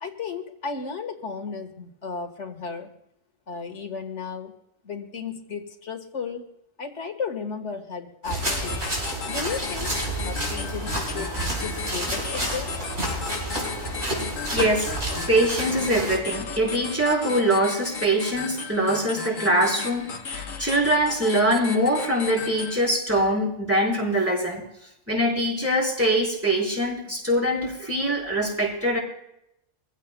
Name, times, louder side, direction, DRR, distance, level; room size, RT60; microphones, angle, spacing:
voice 1, 0.0-2.9 3.5-4.5 4.8-6.5 6.8-8.8 9.3-9.9 10.2-12.8, left 5 dB, 60° left, 5 dB, 1.9 m, -34 dB
sound 1, 8.2-16.2, right 1 dB, 60° right, 5.0 m, -30 dB
sound 2, 8.4-22.9, left 5 dB, 75° left, 1.5 m, -35 dB
voice 2, 14.5-14.9 15.3-24.6 25.1-29.0, right 1 dB, 10° right, -3 dB, 3.9 m, -23 dB
24.0 x 16.0 x 2.2 m, 0.80 s
omnidirectional pair, 1.4 m